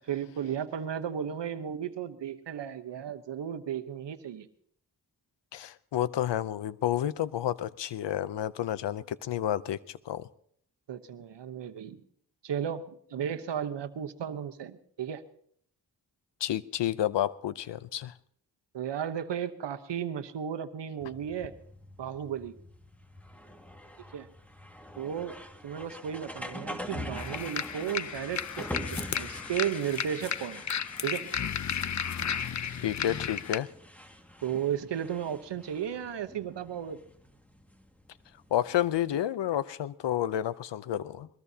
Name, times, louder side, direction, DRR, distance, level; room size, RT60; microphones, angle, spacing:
voice 1, 0.1-4.5 10.9-12.0 12.4-15.2 18.7-21.5 22.0-22.6 24.1-24.3 25.0-25.3 25.6-30.6 31.0-31.3 34.4-37.0, right 9 dB, 85° right, 9 dB, 1.1 m, -34 dB
voice 2, 5.5-10.3 16.4-18.1 32.8-33.7 38.5-41.3, left 11 dB, 85° left, 17 dB, 0.7 m, -30 dB
sound 1, 21.0-39.0, left 1 dB, 5° left, 1.9 m, -44 dB
sound 2, 27.2-33.6, left 8 dB, 45° left, 0.6 m, -34 dB
22.0 x 20.5 x 2.8 m, 0.63 s
cardioid pair, 45°, 41 cm